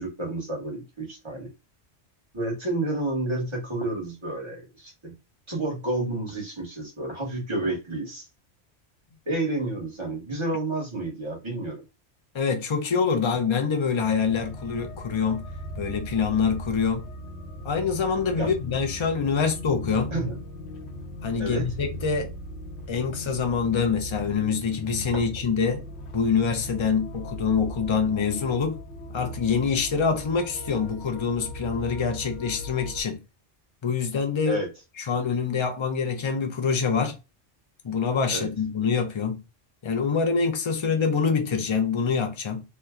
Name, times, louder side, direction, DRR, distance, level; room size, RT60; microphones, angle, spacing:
voice 1, 0.0-1.5 2.3-5.1 5.5-8.3 9.3-11.8 18.4-18.6 19.3-19.4 20.1-20.3 21.4-21.7 25.1-25.2 34.5-34.7 38.3-38.5, right 2 dB, 25° right, 1.2 m, -30 dB
voice 2, 12.3-15.5 15.8-17.1 17.6-20.1 21.2-22.3 22.9-25.8 26.1-28.8 29.1-33.2 33.8-34.6 35.0-37.2 37.8-39.4 39.8-42.6, left 5 dB, 40° left, 0.4 m, -25 dB
sound 1, 14.0-33.0, equal, 70° left, 1.0 m, -38 dB
2.8 x 2.2 x 3.6 m
omnidirectional pair, 1.2 m